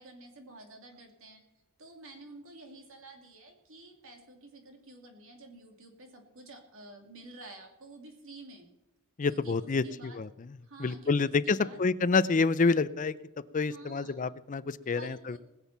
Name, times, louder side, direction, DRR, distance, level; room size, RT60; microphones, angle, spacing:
voice 1, 0.0-1.4 1.8-8.7 9.3-10.2 10.6-11.8 13.7-14.2 14.8-15.4, right 2 dB, 65° right, 3 dB, 2.6 m, -50 dB
voice 2, 9.2-10.3 10.8-13.1 13.5-15.4, left 4 dB, 35° left, 15 dB, 0.5 m, -28 dB
20.5 x 7.3 x 5.8 m, 0.99 s
head